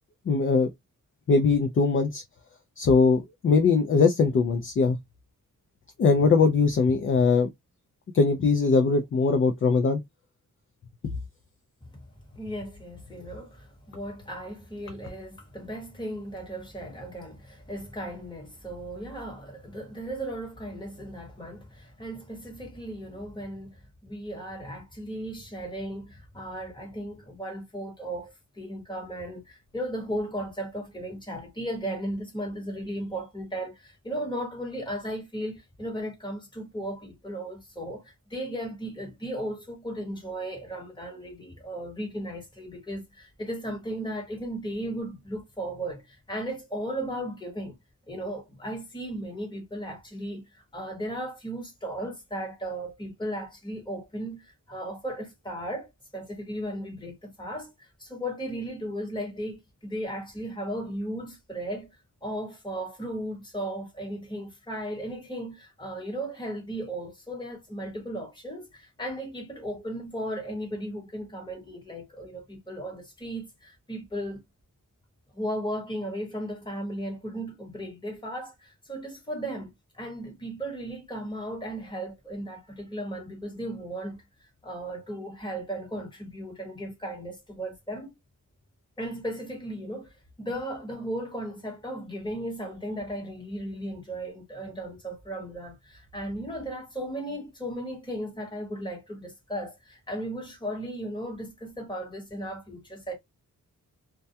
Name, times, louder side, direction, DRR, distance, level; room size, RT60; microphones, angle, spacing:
voice 1, 0.3-0.7 1.3-2.2 2.8-5.0 6.0-7.5 8.1-10.0 11.0-11.1, left 4 dB, 40° left, 0.4 m, -21 dB
voice 2, 12.3-47.8 48.1-61.9 62.2-74.4 75.3-84.2 84.6-88.1 89.0-103.1, right 1 dB, 15° left, 1.1 m, -36 dB
2.2 x 2.1 x 2.6 m
wide cardioid pair, 145°, 33 cm